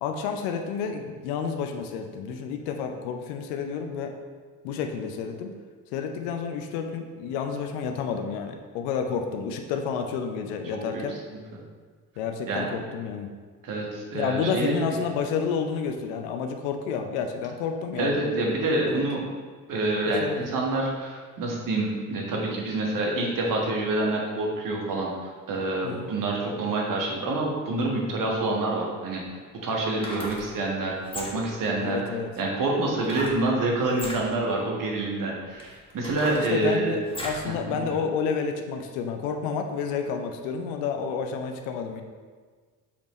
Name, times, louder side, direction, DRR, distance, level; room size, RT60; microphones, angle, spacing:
voice 1, 0.0-4.1 4.6-5.5 5.9-11.2 12.2-13.3 14.1-18.2 18.9-19.0 20.1-20.5 25.8-26.1 31.8-32.3 36.3-42.0, left 6 dB, 60° left, 5 dB, 0.7 m, -30 dB
voice 2, 10.7-11.0 12.5-12.8 13.6-14.8 18.0-19.2 19.7-25.1 25.5-29.2 29.6-32.0 32.4-36.9 37.4-38.0, right 2 dB, 45° right, -1 dB, 1.5 m, -27 dB
sound 1, 29.8-30.5 31.0-31.6 33.0-33.4 33.9-34.2 34.9-35.0 35.6-37.5 37.9-38.0, left 1 dB, 10° left, 1.5 m, -36 dB
6.8 x 5.1 x 3.1 m, 1.5 s
figure-of-eight pair, 55°, 46 cm